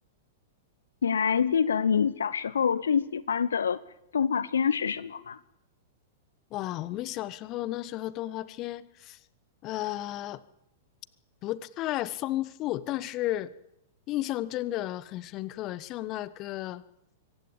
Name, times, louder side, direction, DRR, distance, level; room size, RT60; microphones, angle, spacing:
voice 1, 1.0-3.8 4.1-5.4, left 7 dB, 70° left, 18 dB, 0.8 m, -26 dB
voice 2, 6.5-9.2 9.6-10.4 11.4-13.5 14.1-16.8, left 15 dB, 35° left, 17 dB, 1.2 m, -33 dB
24.0 x 16.5 x 8.9 m, 0.83 s
figure-of-eight pair, 100°, 0 cm